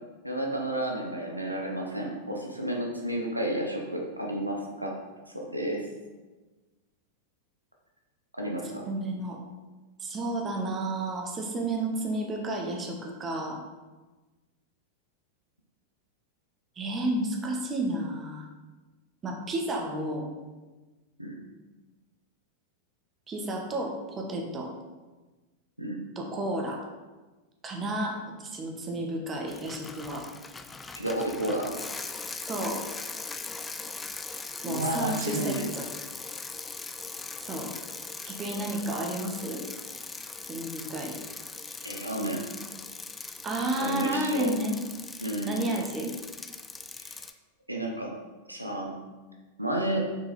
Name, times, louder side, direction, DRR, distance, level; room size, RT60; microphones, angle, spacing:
voice 1, 0.2-4.9 5.3-5.8 8.3-8.9 21.2-21.4 25.8-26.0 31.0-31.9 34.7-35.7 41.8-42.4 43.8-44.5 45.2-45.6 47.0-47.2 47.7-48.1 48.5-49.0 49.6-50.1, right 1 dB, 85° right, 0 dB, 0.9 m, -31 dB
voice 2, 8.9-9.4 10.0-13.6 16.8-18.5 19.2-20.2 23.3-24.7 26.1-26.8 27.6-30.3 32.5-32.8 34.6-35.9 37.4-37.7 38.2-39.6 40.5-41.2 41.7-41.8 43.4-44.8 45.4-46.1, right 1 dB, 25° right, 1 dB, 1.2 m, -31 dB
Bicycle, 29.5-47.3, left 4 dB, 15° left, 0.4 m, -40 dB
6.4 x 4.7 x 4.0 m, 1.2 s
figure-of-eight pair, 90°, 0 cm